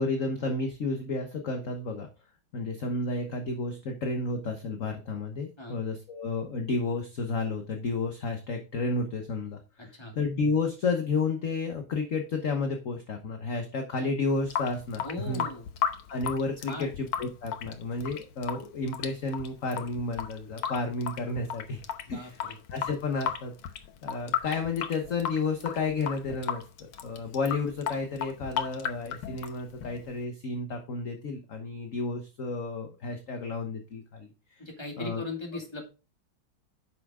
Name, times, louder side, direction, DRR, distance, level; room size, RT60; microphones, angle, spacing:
voice 1, 0.0-2.1 2.5-15.4 16.1-21.8 22.1-22.4 22.7-23.5 24.0-26.7 27.0-34.6 35.0-35.2, left 3 dB, 45° left, 4 dB, 1.3 m, -31 dB
voice 2, 9.8-10.1 15.0-15.6 16.6-16.9 22.1-22.6 34.6-35.9, left 2 dB, 15° left, 1 dB, 2.3 m, -38 dB
Water tap faucet / Sink (filling or washing) / Drip, 14.3-30.2, left 8 dB, 90° left, 1.8 m, -35 dB
9.7 x 5.9 x 3.6 m, 0.31 s
omnidirectional pair, 2.3 m